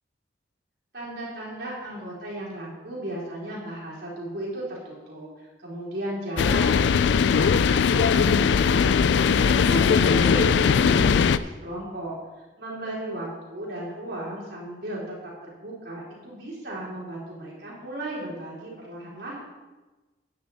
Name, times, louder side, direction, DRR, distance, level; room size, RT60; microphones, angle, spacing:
voice 1, 0.9-8.9 9.4-15.0 15.4-19.4, right 1 dB, 55° right, -5 dB, 3.8 m, -35 dB
sound 1, 6.4-11.4, left 6 dB, 70° left, 0.4 m, -20 dB
10.5 x 9.5 x 4.2 m, 1.2 s
head